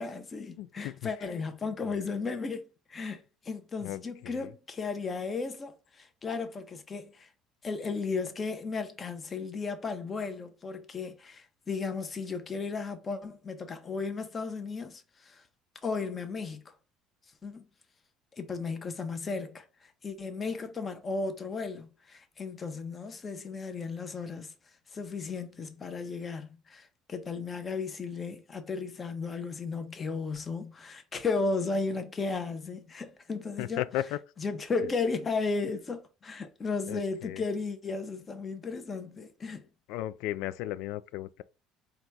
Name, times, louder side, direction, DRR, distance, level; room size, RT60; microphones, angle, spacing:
voice 1, 0.0-7.3 7.6-15.4 15.8-16.6 17.4-17.6 18.3-24.5 24.9-33.8 34.4-39.6, left 4 dB, 25° left, 0.8 m, -35 dB
voice 2, 0.6-1.3 1.8-2.0 3.8-4.6 33.6-34.2 36.9-37.4 39.9-41.4, left 14 dB, 80° left, 0.3 m, -36 dB
3.9 x 2.3 x 4.5 m
cardioid pair, 130°, 0 cm